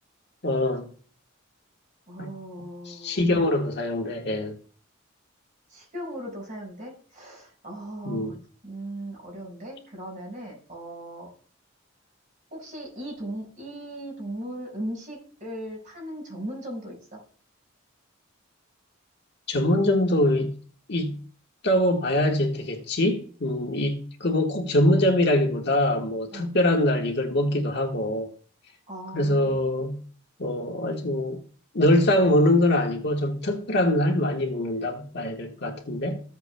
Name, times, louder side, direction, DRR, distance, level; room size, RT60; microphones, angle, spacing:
voice 1, 0.4-0.9 2.2-2.3 2.9-4.5 8.0-8.4 19.5-20.6 20.9-21.2 21.6-28.3 29.1-30.0 30.4-31.4 31.7-36.2, left 1 dB, 55° left, 1.4 m, -23 dB
voice 2, 2.1-3.2 5.7-8.4 8.6-11.3 12.5-17.2 26.3-26.5 28.9-29.6, right 1 dB, 40° right, 5.1 m, -38 dB
14.5 x 8.2 x 2.2 m
head